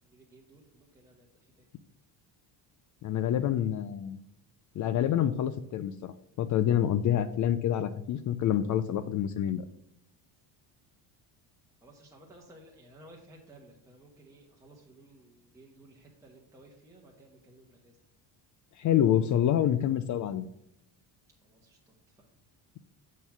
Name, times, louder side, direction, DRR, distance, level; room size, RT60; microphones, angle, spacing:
voice 1, 0.0-1.7 11.8-18.0 21.4-22.3, right 1 dB, 5° right, -3 dB, 1.1 m, -56 dB
voice 2, 3.0-4.2 4.8-9.6 18.8-20.5, left 10 dB, 45° left, 12 dB, 0.5 m, -27 dB
7.1 x 4.2 x 5.7 m, 0.76 s
cardioid pair, 130°, 44 cm